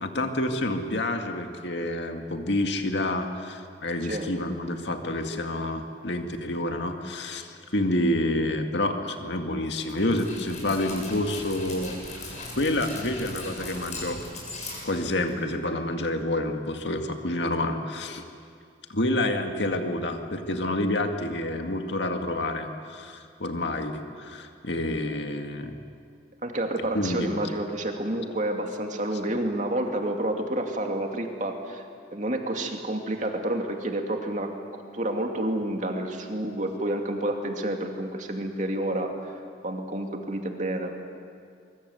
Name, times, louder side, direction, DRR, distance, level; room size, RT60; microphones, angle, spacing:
voice 1, 0.0-14.2 14.8-18.2 18.9-25.7 26.9-27.4, left 1 dB, 75° left, 5 dB, 2.1 m, -28 dB
Dog, 9.8-15.5, left 2 dB, 40° left, 7.1 m, -39 dB
voice 2, 26.4-31.8 32.1-39.3 39.6-40.9, right 1 dB, 40° right, 3 dB, 2.6 m, -29 dB
24.0 x 23.5 x 8.1 m, 2.3 s
head